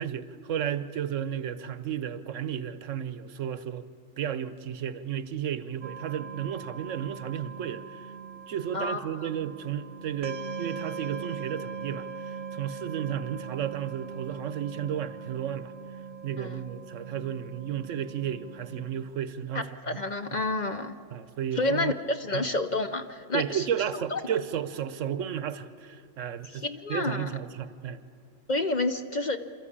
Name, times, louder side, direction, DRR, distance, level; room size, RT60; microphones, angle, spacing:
voice 1, 0.0-3.9 4.2-8.1 8.5-15.7 16.2-20.0 21.1-22.0 22.3-22.5 23.3-26.6 26.9-28.0, right 9 dB, 75° right, 13 dB, 1.1 m, -33 dB
sound 1, 5.8-18.9, right 5 dB, 50° right, 0.8 m, -41 dB
voice 2, 8.7-9.3 16.4-16.6 19.5-21.0 21.5-23.7 24.1-24.2 26.4-27.4 28.5-29.4, left 2 dB, 45° left, 8 dB, 0.7 m, -29 dB
27.5 x 13.5 x 8.6 m, 2.6 s
omnidirectional pair, 1.3 m